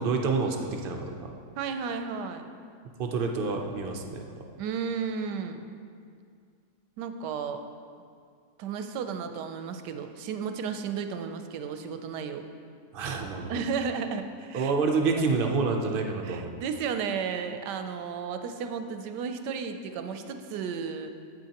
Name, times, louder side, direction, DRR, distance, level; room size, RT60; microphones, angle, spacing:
voice 1, 0.0-1.3 3.0-4.3 12.9-13.6 14.5-16.5, right 4 dB, 65° right, 3 dB, 0.5 m, -28 dB
voice 2, 1.6-2.5 4.6-5.6 7.0-7.6 8.6-12.5 13.1-13.2 13.5-14.7 15.3-15.5 16.2-21.1, right 6 dB, 90° right, 7 dB, 1.2 m, -33 dB
9.0 x 8.5 x 2.9 m, 2.3 s
omnidirectional pair, 1.8 m